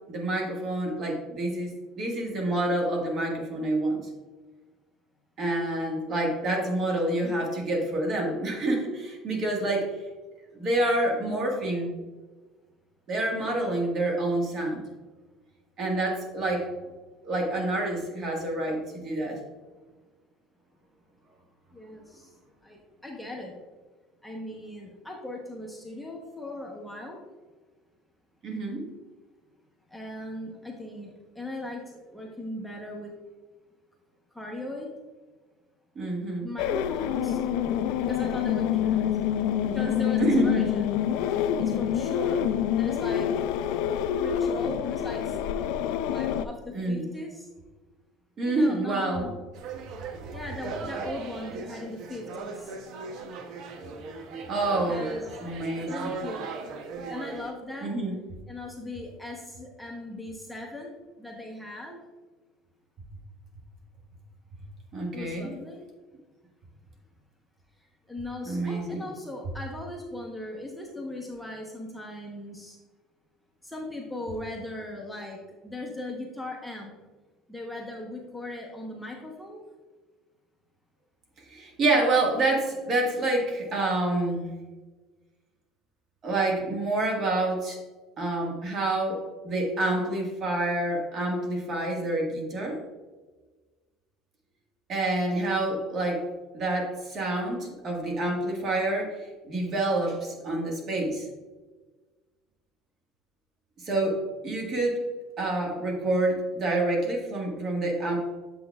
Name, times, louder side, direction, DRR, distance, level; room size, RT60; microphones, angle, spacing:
voice 1, 0.1-4.1 5.4-9.9 10.5-12.0 13.1-14.8 15.8-16.7 17.2-19.4 28.4-28.8 35.9-36.5 40.2-40.7 46.7-47.1 48.4-49.3 54.5-55.0 55.4-56.1 57.8-58.2 64.9-65.5 68.4-69.0 81.5-84.5 86.2-87.8 88.2-92.8 94.9-96.3 96.5-101.3 103.8-105.1 105.4-108.2, right 2 dB, 40° right, 0 dB, 1.5 m, -27 dB
voice 2, 21.7-22.3 22.6-23.5 24.2-27.2 29.9-33.1 34.3-34.9 36.4-37.4 38.0-39.2 39.6-40.9 41.6-42.4 42.7-43.3 44.2-45.4 46.1-47.5 48.4-49.4 50.3-52.8 54.8-55.3 55.8-56.5 57.1-57.9 58.5-60.9 61.2-62.0 65.1-65.8 67.8-72.8 73.6-76.9 77.5-79.6, left 1 dB, ahead, -1 dB, 0.8 m, -38 dB
sound 1, 36.6-46.5, left 9 dB, 75° left, 0.3 m, -27 dB
sound 2, 49.5-57.5, right 4 dB, 60° right, 0.7 m, -38 dB
7.4 x 6.2 x 2.3 m, 1.3 s
cardioid pair, 125°, 0 cm